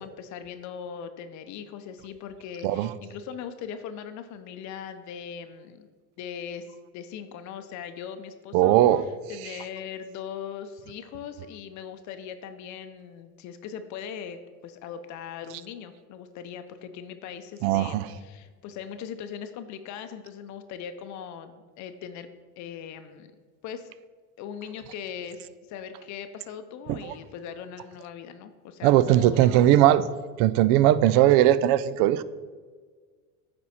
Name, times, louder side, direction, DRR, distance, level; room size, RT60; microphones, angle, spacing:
voice 1, 0.0-5.9 6.2-8.7 9.3-22.3 22.6-23.3 23.6-23.9 24.4-29.7, left 8 dB, 55° left, 0.6 m, -40 dB
voice 2, 8.5-9.0 17.6-18.1 26.9-27.1 28.8-30.0 30.4-32.2, right 13 dB, 70° right, 0.5 m, -19 dB
9.4 x 4.4 x 4.2 m
cardioid pair, 125°, 35 cm